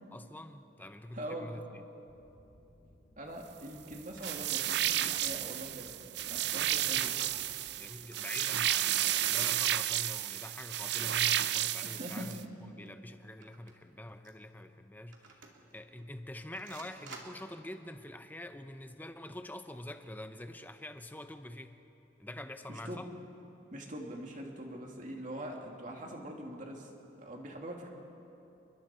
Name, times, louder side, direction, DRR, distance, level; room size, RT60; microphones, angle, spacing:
voice 1, 0.1-1.8 6.7-7.3 7.8-15.5 15.7-21.8 22.2-23.1, left 1 dB, 10° left, 8 dB, 0.7 m, -46 dB
voice 2, 1.1-1.6 3.2-5.9 6.3-7.2 11.8-12.3 22.7-23.1 23.7-26.9 27.2-27.9, right 1 dB, 40° right, 1 dB, 2.6 m, -43 dB
sound 1, 2.1-7.9, equal, 65° left, 2.7 m, -61 dB
sound 2, 4.1-4.4 4.9-5.1 5.3-5.4 5.7-5.9 6.2-7.7 8.0-8.4 9.8-10.8 11.3-11.4 12.2-12.6 12.9-13.0 13.4-13.7 14.2-14.3 15.1-15.8 16.5-17.6, right 4 dB, 80° right, 2.5 m, -52 dB
sound 3, 4.2-12.4, right 12 dB, 60° right, 0.5 m, -32 dB
29.5 x 22.0 x 4.4 m, 2.9 s
head